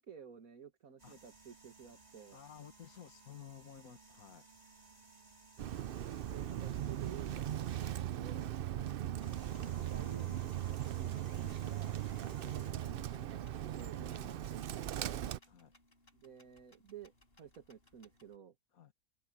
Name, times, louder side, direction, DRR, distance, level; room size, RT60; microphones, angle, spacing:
voice 1, 0.0-2.4 5.9-8.5 9.1-12.0 12.4-15.2 16.1-18.6, right 7 dB, 65° right, 2.0 m, -53 dB
sound 1, 1.0-8.3 9.0-13.0 14.8-14.9 15.4-15.5, right 2 dB, 25° right, 4.3 m, -60 dB
voice 2, 2.3-4.5 8.7-9.0 12.3-12.6 14.2-14.4 15.5-15.7 18.7-18.9, left 9 dB, 70° left, 2.0 m, -54 dB
Bird, 5.6-15.4, right 11 dB, 85° right, 0.5 m, -39 dB
sound 2, 8.9-18.4, left 1 dB, 40° left, 4.9 m, -68 dB
omnidirectional pair, 1.6 m